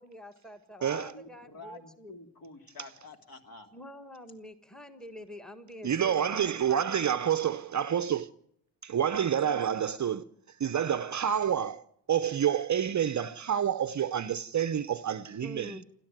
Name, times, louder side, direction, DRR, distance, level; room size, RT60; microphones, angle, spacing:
voice 1, 0.0-2.2 3.7-6.9 9.4-9.6 15.4-15.8, left 1 dB, ahead, 1.6 m, -46 dB
voice 2, 0.8-3.7, left 2 dB, 45° left, 3.2 m, -48 dB
voice 3, 5.8-8.3 8.8-10.2 10.6-11.8 12.1-15.8, right 9 dB, 35° right, 0.8 m, -28 dB
28.5 x 13.0 x 9.1 m
cardioid pair, 110°, 47 cm